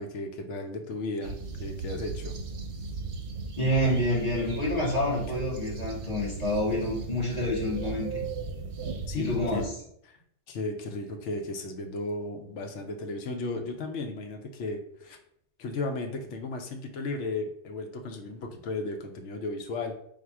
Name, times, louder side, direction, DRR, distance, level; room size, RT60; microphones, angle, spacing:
voice 1, 0.0-2.4 9.1-9.6 10.0-10.2 10.5-15.2 15.6-19.9, left 2 dB, 90° left, 4 dB, 1.0 m, -35 dB
sound 1, 1.2-9.7, right 3 dB, 60° right, 0.7 m, -37 dB
voice 2, 3.6-8.2 9.1-9.7, equal, 35° left, -5 dB, 1.5 m, -28 dB
3.6 x 2.4 x 4.5 m, 0.71 s
omnidirectional pair, 1.2 m